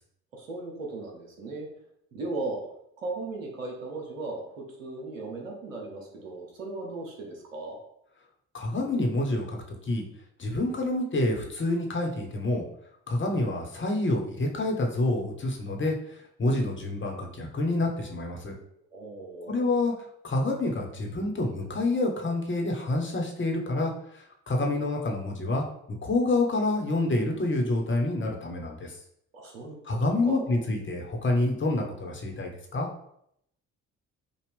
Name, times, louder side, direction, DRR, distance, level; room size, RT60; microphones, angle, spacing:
voice 1, 0.3-1.7 2.1-2.6 3.0-7.8 16.4-16.6 18.9-19.7 29.3-29.8 30.2-30.5, right 3 dB, 85° right, 0 dB, 0.9 m, -37 dB
voice 2, 8.5-9.6 9.9-10.0 10.4-12.6 13.1-15.9 16.4-18.6 19.5-19.9 20.2-25.6 26.0-28.9 29.8-32.9, left 2 dB, 30° left, 1 dB, 1.2 m, -27 dB
5.2 x 2.4 x 3.4 m, 0.73 s
figure-of-eight pair, 45°, 38 cm